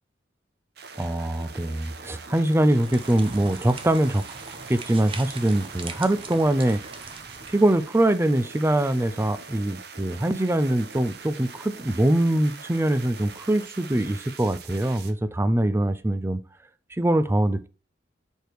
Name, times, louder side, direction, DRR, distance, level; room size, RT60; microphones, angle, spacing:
sound 1, 0.8-15.1, right 5 dB, 60° right, 0.8 m, -43 dB
voice 1, 1.0-4.2 4.7-6.8 7.5-16.4 16.9-17.7, right 1 dB, 15° right, 0.4 m, -23 dB
sound 2, 2.8-7.8, right 4 dB, 30° right, 0.8 m, -41 dB
5.0 x 4.6 x 4.5 m
head